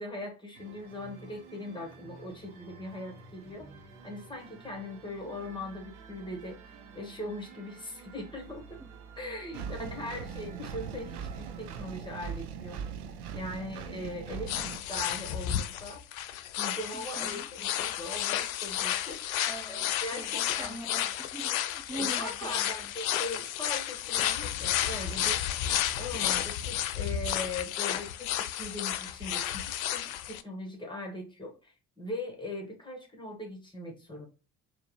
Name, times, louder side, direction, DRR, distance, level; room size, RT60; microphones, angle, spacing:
voice 1, 0.0-3.7 4.0-6.6 7.0-8.8 9.2-12.8 13.3-16.0 16.6-20.8 21.9-34.3, left 1 dB, 10° left, 1.7 m, -40 dB
sound 1, 0.5-11.9, right 5 dB, 55° right, 1.1 m, -51 dB
voice 2, 3.4-3.8 9.6-10.0 16.9-17.5 19.5-22.9, right 1 dB, 5° right, 0.6 m, -43 dB
Engine, 9.5-14.8, right 7 dB, 80° right, 0.6 m, -40 dB
sound 2, 14.5-30.4, left 11 dB, 70° left, 0.5 m, -32 dB
4.3 x 2.6 x 3.1 m
figure-of-eight pair, 50°, 44 cm